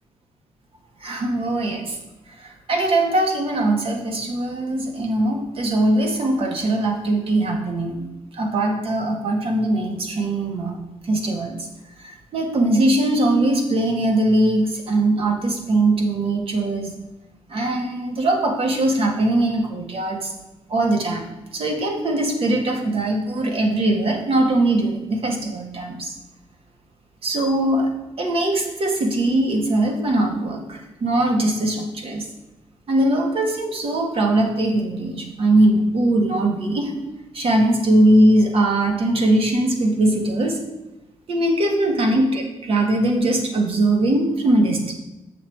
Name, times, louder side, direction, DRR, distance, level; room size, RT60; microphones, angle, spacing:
voice 1, 1.0-2.0 2.4-7.9 8.3-10.8 11.0-11.6 12.0-16.9 17.5-20.3 20.7-21.3 21.5-26.1 27.2-27.9 28.2-32.2 32.9-36.9 37.3-40.6 41.3-44.9, right 1 dB, 60° right, 2 dB, 1.5 m, -21 dB
7.0 x 6.3 x 4.6 m, 1.0 s
cardioid pair, 105°, 11 cm